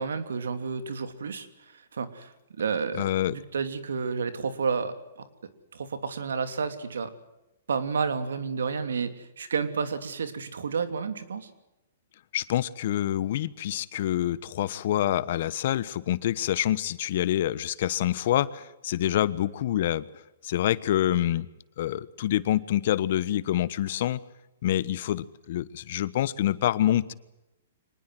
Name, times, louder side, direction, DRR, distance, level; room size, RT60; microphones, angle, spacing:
voice 1, 0.0-5.2 5.7-7.1 7.7-11.5, right 5 dB, 85° right, 11 dB, 2.9 m, -31 dB
voice 2, 3.0-3.3 12.3-20.1 20.4-21.5 21.8-24.2 24.6-27.1, left 12 dB, 55° left, 18 dB, 1.2 m, -26 dB
24.5 x 20.0 x 7.8 m, 0.93 s
hypercardioid pair, 150°, 0 cm